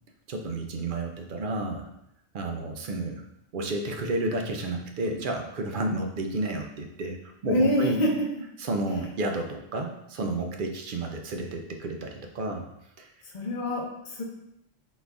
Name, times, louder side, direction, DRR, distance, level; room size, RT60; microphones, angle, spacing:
voice 1, 0.3-1.9 2.3-3.2 3.5-8.0 8.6-12.7 13.0-13.1, right 2 dB, 60° right, 3 dB, 0.7 m, -31 dB
voice 2, 7.5-8.3 13.2-14.2, equal, 45° left, -1 dB, 0.8 m, -26 dB
4.1 x 2.5 x 3.4 m, 0.81 s
omnidirectional pair, 1.1 m